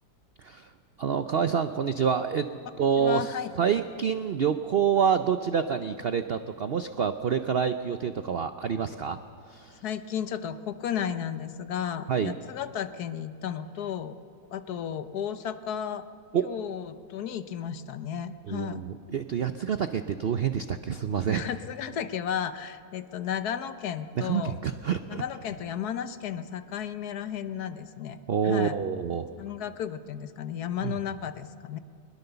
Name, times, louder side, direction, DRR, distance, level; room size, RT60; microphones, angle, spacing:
voice 1, 0.4-0.7 1.0-2.5 2.8-3.3 3.6-9.2 9.5-9.8 12.1-12.3 16.3-16.5 18.5-21.5 24.2-25.2 28.3-29.3 30.8-31.0, right 7 dB, 80° right, 10 dB, 0.5 m, -27 dB
voice 2, 3.0-3.5 9.8-14.2 14.5-16.0 16.4-18.8 21.3-24.6 25.1-28.2 28.4-28.8 29.4-31.8, left 9 dB, 65° left, 11 dB, 1.3 m, -33 dB
21.5 x 21.0 x 6.9 m, 2.2 s
omnidirectional pair, 1.9 m